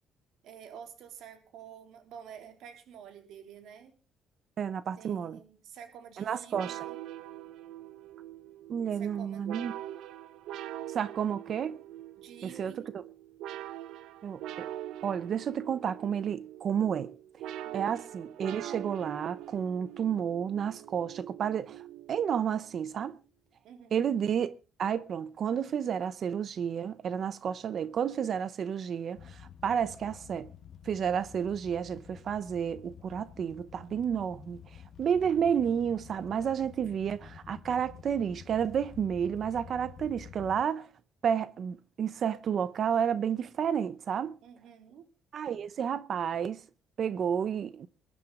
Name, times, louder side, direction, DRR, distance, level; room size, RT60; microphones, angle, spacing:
voice 1, 0.4-3.9 5.0-7.0 9.0-9.5 12.2-12.9 17.6-17.9 23.6-23.9 44.4-45.1, right 8 dB, 70° right, 3.6 m, -49 dB
voice 2, 4.6-5.4 6.2-6.9 8.7-9.7 10.9-11.8 12.4-13.0 14.2-14.7 15.0-17.1 17.5-21.8 22.1-23.2 23.9-24.5 24.8-30.5 30.8-40.9 41.2-44.4 45.3-46.6 47.0-47.9, right 8 dB, 45° right, 0.7 m, -31 dB
sound 1, 6.5-22.7, right 12 dB, 85° right, 1.2 m, -43 dB
sound 2, 29.2-40.6, left 8 dB, 40° left, 0.8 m, -50 dB
21.5 x 11.0 x 3.7 m
cardioid pair, 160°, 0 cm